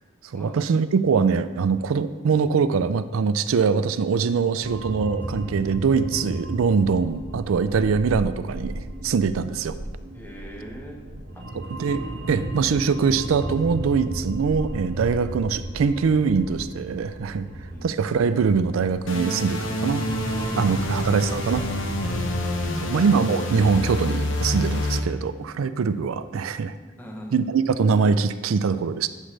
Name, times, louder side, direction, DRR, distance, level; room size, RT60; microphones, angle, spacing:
voice 1, 0.3-9.8 11.5-17.5 17.8-20.0 20.6-21.6 22.8-26.7 27.3-29.1, right 5 dB, 90° right, 12 dB, 0.4 m, -23 dB
sound 1, 4.6-22.8, right 1 dB, 60° right, 0.7 m, -34 dB
voice 2, 10.1-11.4 17.4-17.9 20.6-21.0 22.7-23.0 27.0-27.4, equal, 10° left, 1 dB, 0.8 m, -40 dB
sound 2, 19.1-25.0, left 1 dB, 70° left, 0.8 m, -28 dB
9.7 x 6.6 x 3.3 m, 1.3 s
head